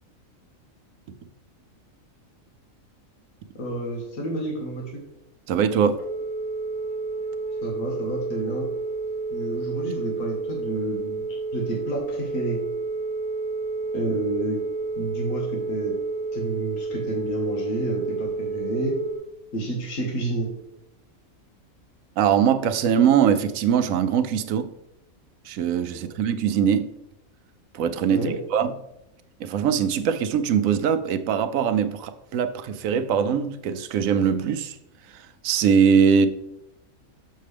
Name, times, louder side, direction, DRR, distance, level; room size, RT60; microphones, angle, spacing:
voice 1, 3.6-5.0 7.6-8.7 9.3-11.2 11.5-12.6 13.9-14.6 15.0-16.0 16.3-18.9 19.5-20.5 26.1-26.2 28.1-28.3, right 2 dB, 75° left, 1.9 m, -30 dB
voice 2, 5.5-6.0 22.2-24.7 25.5-26.9 27.7-28.7 29.4-34.8 35.1-36.3, right 7 dB, 80° right, 1.0 m, -22 dB
Telephone, 6.0-19.2, right 3 dB, 35° left, 2.0 m, -30 dB
6.5 x 6.4 x 3.3 m
omnidirectional pair, 1.4 m